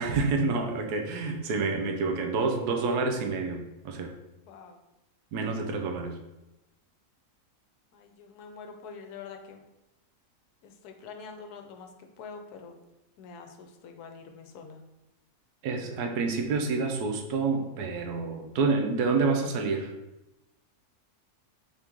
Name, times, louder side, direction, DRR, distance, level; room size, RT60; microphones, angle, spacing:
voice 1, 0.0-4.1 5.3-6.2 15.6-19.9, right 4 dB, 80° right, 4 dB, 1.2 m, -28 dB
voice 2, 4.5-4.8 7.9-9.6 10.6-12.8 13.2-14.8, left 5 dB, 80° left, 5 dB, 1.1 m, -45 dB
3.8 x 3.0 x 3.5 m, 0.96 s
omnidirectional pair, 1.7 m